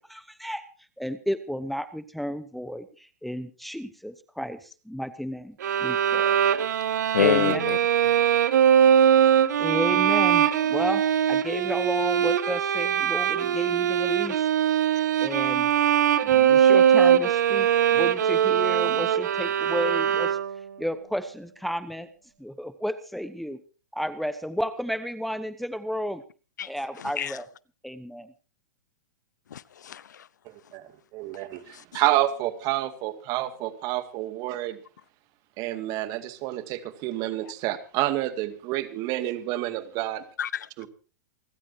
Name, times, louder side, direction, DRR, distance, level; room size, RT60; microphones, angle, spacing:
voice 1, 0.1-0.7 1.0-6.4 7.2-7.6 9.6-14.5 15.2-15.7 16.2-20.4 20.8-22.1 22.4-23.6 23.9-26.2 26.6-27.5 27.8-28.3, equal, ahead, 0.9 m, -32 dB
sound 1, 5.6-20.7, right 9 dB, 70° right, 1.8 m, -21 dB
voice 2, 7.1-7.8 26.6-26.7 27.0-27.4 29.5-30.3 31.7-32.0 40.4-40.7, left 9 dB, 80° left, 0.8 m, -27 dB
voice 3, 30.5-34.8 35.6-40.2 40.8-40.9, right 15 dB, 40° right, 2.3 m, -29 dB
28.5 x 13.5 x 2.9 m
hypercardioid pair, 125°, 10 cm